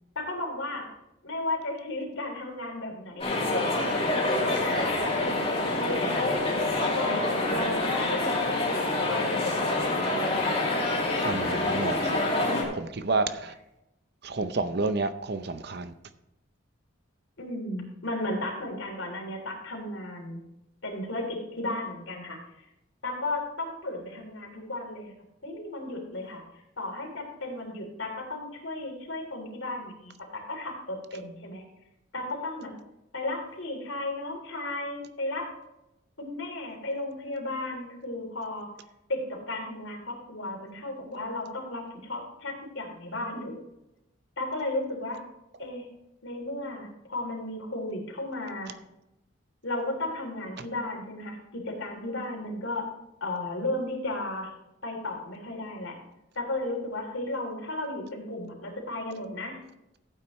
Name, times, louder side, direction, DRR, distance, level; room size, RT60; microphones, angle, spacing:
voice 1, 0.1-0.9 1.2-6.4 6.7-10.6 17.4-20.4 20.8-22.6 23.0-25.1 25.4-26.4 26.8-31.6 32.1-32.7 33.1-35.5 36.2-38.7 39.1-43.6 44.4-45.2 45.6-45.9 46.2-48.7 49.6-52.8 53.2-54.5 54.8-56.0 56.3-59.6, left 2 dB, 80° left, 1 dB, 3.3 m, -34 dB
sound 1, 3.2-12.6, left 2 dB, 30° left, 2.6 m, -27 dB
voice 2, 11.2-12.2 12.7-13.5 14.2-15.9 50.6-50.7, right 3 dB, 50° right, 11 dB, 0.6 m, -30 dB
14.5 x 8.7 x 3.1 m, 0.89 s
head